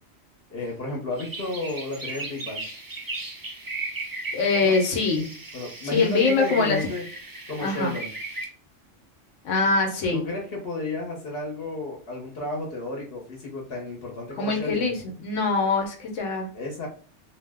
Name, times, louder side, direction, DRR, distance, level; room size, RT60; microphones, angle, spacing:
voice 1, 0.5-2.7 4.6-4.8 5.5-7.0 7.5-8.1 10.1-14.9 16.5-16.9, left 2 dB, 55° left, -2 dB, 1.0 m, -32 dB
sound 1, 1.1-8.4, right 3 dB, 30° right, 0.4 m, -36 dB
voice 2, 4.3-5.3 5.9-6.8 7.6-7.9 9.4-10.2 14.4-16.5, left 4 dB, 85° left, 2 dB, 1.0 m, -23 dB
2.6 x 2.0 x 3.4 m, 0.42 s
omnidirectional pair, 1.3 m